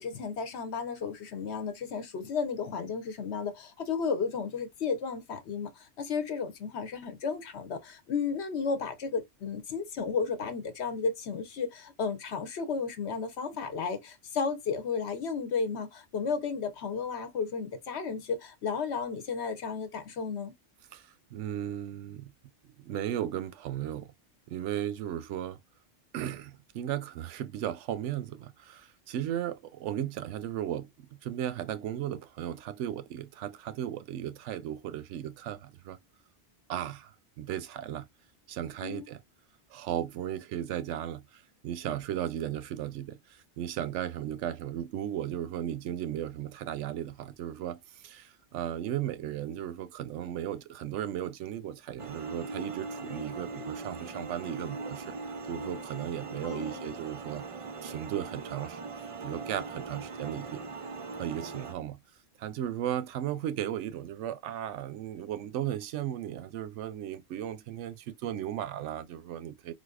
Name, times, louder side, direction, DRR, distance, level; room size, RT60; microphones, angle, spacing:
voice 1, 0.0-20.5 38.8-39.1 56.4-57.0, left 5 dB, 70° left, 1.0 m, -33 dB
voice 2, 20.9-22.3 22.8-24.1 24.5-25.6 26.1-36.0 36.7-37.1 37.4-38.1 38.5-39.2 39.7-55.2 55.5-57.5 57.8-58.8 59.2-60.6 61.2-62.0 62.4-69.7, right 11 dB, 90° right, 0.9 m, -36 dB
sound 1, 52.0-61.7, right 3 dB, 60° right, 0.3 m, -40 dB
4.1 x 2.6 x 2.4 m
omnidirectional pair, 1.2 m